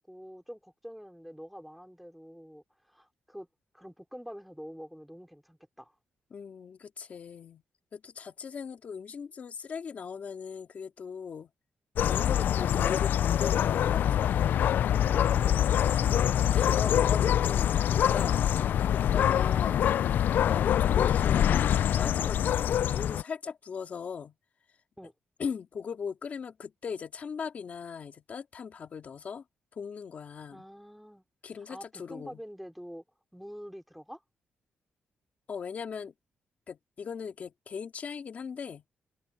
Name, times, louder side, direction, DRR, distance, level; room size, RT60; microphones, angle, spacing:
voice 1, 0.0-3.5 3.7-6.0 12.5-13.2 15.1-15.6 18.6-18.8 19.3-19.6 25.0-25.1 30.5-31.2 31.7-33.0 33.3-34.2, equal, ahead, 3.6 m, -46 dB
voice 2, 6.3-7.6 7.9-11.5 12.0-14.7 15.9-18.4 19.1-20.0 20.4-24.3 25.4-29.4 29.7-30.6 31.4-32.4 35.5-36.1 36.7-38.8, left 6 dB, 45° left, 2.2 m, -39 dB
sound 1, 12.0-23.2, left 10 dB, 70° left, 0.4 m, -25 dB
open air
cardioid pair, 135°, 3 cm